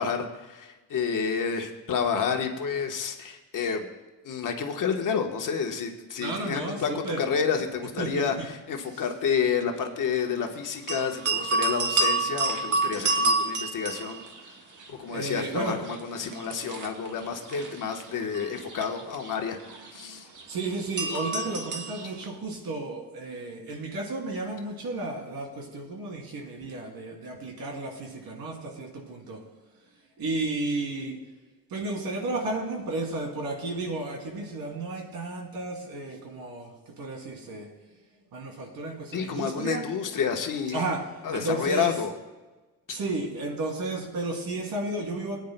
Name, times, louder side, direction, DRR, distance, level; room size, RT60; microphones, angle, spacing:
voice 1, 0.0-3.9 4.2-14.5 14.9-19.6 19.9-20.3 39.1-40.8 41.2-42.1 42.9-43.0, left 6 dB, 55° left, 4 dB, 1.2 m, -29 dB
voice 2, 6.2-7.3 8.0-8.3 8.9-9.0 15.1-15.8 20.5-29.4 30.2-31.2 31.7-37.7 38.3-39.8 40.7-41.0 41.3-41.9 42.9-45.4, right 2 dB, 70° right, 1 dB, 2.8 m, -33 dB
sound 1, 10.9-14.9 15.1-22.2, right 3 dB, 55° right, 1.4 m, -29 dB
18.0 x 9.4 x 2.2 m, 1.2 s
cardioid pair, 100°, 37 cm